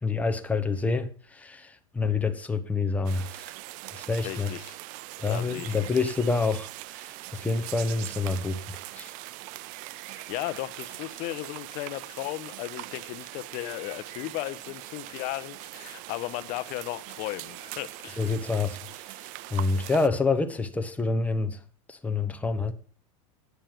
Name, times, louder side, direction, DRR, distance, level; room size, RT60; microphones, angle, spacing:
voice 1, 0.0-3.5 3.9-4.5 5.2-9.1 18.2-21.6 21.9-22.7, left 4 dB, 10° left, 0.9 m, -28 dB
sound 1, 3.1-20.1, right 18 dB, 45° right, 0.4 m, -41 dB
voice 2, 4.2-4.8 5.3-5.9 10.0-18.3, left 17 dB, 45° left, 0.9 m, -36 dB
9.4 x 6.6 x 5.9 m
supercardioid pair, 130°, 18 cm